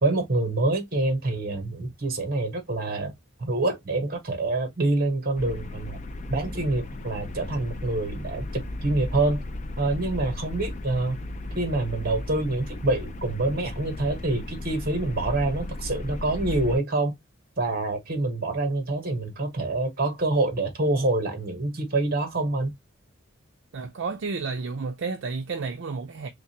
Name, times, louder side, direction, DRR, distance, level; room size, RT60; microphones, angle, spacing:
voice 1, 0.0-3.1 3.4-6.0 6.3-9.4 9.8-11.2 11.5-17.1 17.6-22.7, right 2 dB, 45° right, 1.1 m, -26 dB
sound 1, 5.4-16.8, left 2 dB, 35° left, 0.4 m, -35 dB
voice 2, 23.7-26.3, right 4 dB, 60° right, 0.5 m, -31 dB
3.4 x 3.2 x 2.8 m
head